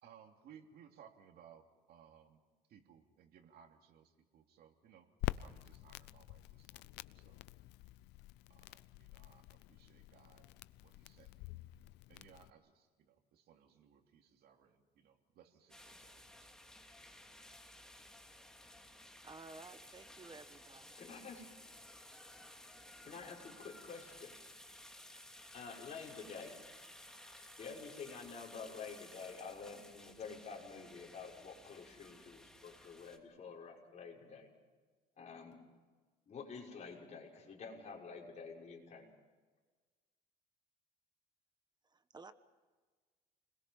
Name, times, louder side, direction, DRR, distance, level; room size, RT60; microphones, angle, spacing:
voice 1, 0.0-2.4 2.7-5.1 5.4-7.4 8.5-11.5 12.1-16.5, right 8 dB, 70° right, 3 dB, 2.8 m, -63 dB
Crackle, 5.2-12.5, left 18 dB, 90° left, 0.6 m, -47 dB
sound 1, 15.7-33.2, left 1 dB, 5° left, 2.8 m, -56 dB
voice 2, 19.2-20.9 41.8-42.3, right 3 dB, 25° right, 11 dB, 1.3 m, -54 dB
voice 3, 21.0-21.5 23.0-24.3 25.5-26.6 27.6-34.5 35.2-35.6 36.3-39.1, left 5 dB, 40° left, -1 dB, 6.3 m, -49 dB
29.5 x 21.5 x 5.7 m, 1.4 s
cardioid pair, 110°, 17 cm